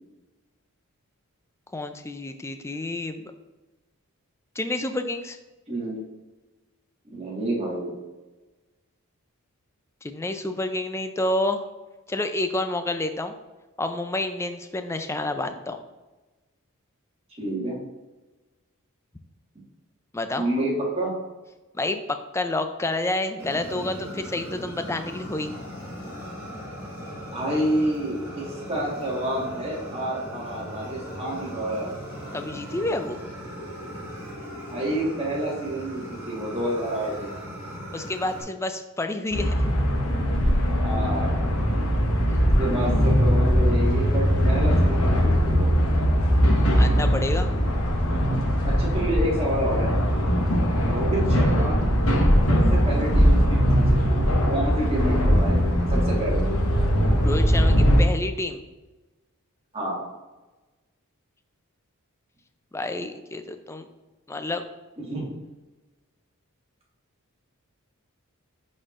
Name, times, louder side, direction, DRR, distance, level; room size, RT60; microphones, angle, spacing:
voice 1, 1.7-3.3 4.6-5.4 10.0-11.6 12.1-13.3 13.8-15.8 20.1-20.5 21.7-25.5 32.3-33.2 37.9-39.5 42.3-42.4 46.6-47.5 57.2-58.6 62.7-63.8 64.3-64.6, left 2 dB, 10° left, 8 dB, 0.3 m, -29 dB
voice 2, 5.7-6.0 7.0-7.9 17.4-17.8 20.4-21.1 27.3-31.9 34.7-37.4 40.8-41.4 42.6-45.7 48.6-49.9 50.8-51.8 52.5-56.5 59.7-60.1 65.1-65.4, right 1 dB, 25° right, -4 dB, 1.5 m, -29 dB
Fire, 23.4-38.4, equal, 10° right, 1.4 m, -38 dB
sound 1, 39.3-58.0, equal, 65° left, 1.1 m, -20 dB
9.8 x 4.3 x 2.5 m, 1.2 s
head